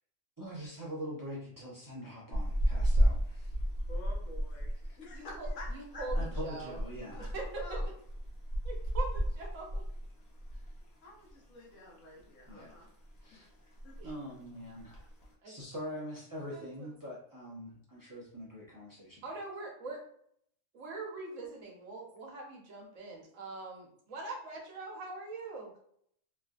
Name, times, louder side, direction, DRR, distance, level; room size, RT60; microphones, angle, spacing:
voice 1, 0.4-3.5 6.1-7.3 12.5-12.9 13.2-13.5 14.0-15.1 15.4-19.2, equal, 25° right, -6 dB, 0.5 m, -43 dB
sound 1, 2.3-10.8 11.1-11.3 11.7-12.6 12.9-13.2 13.5-13.6 13.8-14.2 14.8-15.3, equal, 55° left, 0.9 m, -33 dB
voice 2, 3.9-6.0 7.0-7.9 11.0-12.9 13.3-13.4 13.8-13.9, left 2 dB, 75° left, -2 dB, 1.2 m, -49 dB
voice 3, 5.1-6.8 7.2-7.8 8.6-9.8 14.0-14.1 15.4-15.5 16.5-16.9 19.2-20.0 20.7-25.7, right 3 dB, 70° right, 0 dB, 1.1 m, -43 dB
3.1 x 2.5 x 2.3 m, 0.68 s
omnidirectional pair, 1.4 m